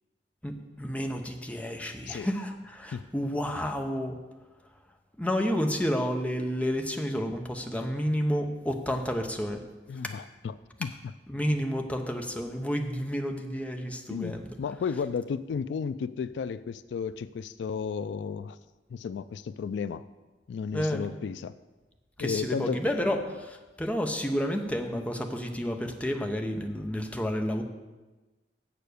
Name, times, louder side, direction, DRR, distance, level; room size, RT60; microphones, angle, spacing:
voice 1, 0.4-4.1 5.2-9.6 11.3-14.5 20.7-21.0 22.2-27.6, equal, 10° left, 4 dB, 0.7 m, -30 dB
voice 2, 9.9-10.5 10.8-10.9 14.1-18.6 18.9-20.0 20.5-21.6 22.2-23.2, left 6 dB, 75° left, 15 dB, 0.3 m, -33 dB
7.6 x 6.9 x 6.6 m, 1.2 s
head